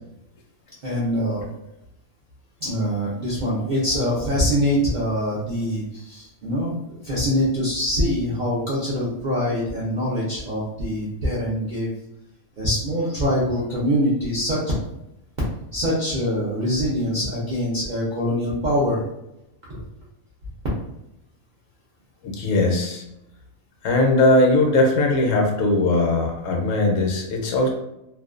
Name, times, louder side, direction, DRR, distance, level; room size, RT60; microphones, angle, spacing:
voice 1, 0.8-1.4 2.6-11.9 12.6-14.6 15.7-19.0 19.7-19.8, equal, 60° right, -7 dB, 0.5 m, -24 dB
voice 2, 22.2-23.0 23.8-27.7, left 2 dB, 70° left, 0 dB, 0.9 m, -19 dB
2.4 x 2.1 x 2.4 m, 0.86 s
omnidirectional pair, 1.4 m